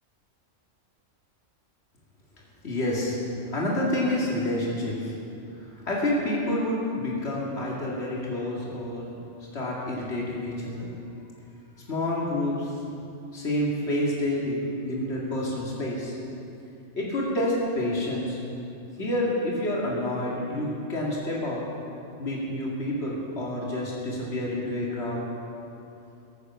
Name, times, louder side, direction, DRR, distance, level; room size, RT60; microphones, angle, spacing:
voice 1, 2.6-3.2 3.5-5.1 5.5-9.1 9.5-10.9 11.9-12.7 13.3-16.1 17.0-18.4 19.0-21.6 22.2-25.2, left 1 dB, 60° left, -5 dB, 2.7 m, -28 dB
20.5 x 9.4 x 5.9 m, 2.7 s
omnidirectional pair, 1.3 m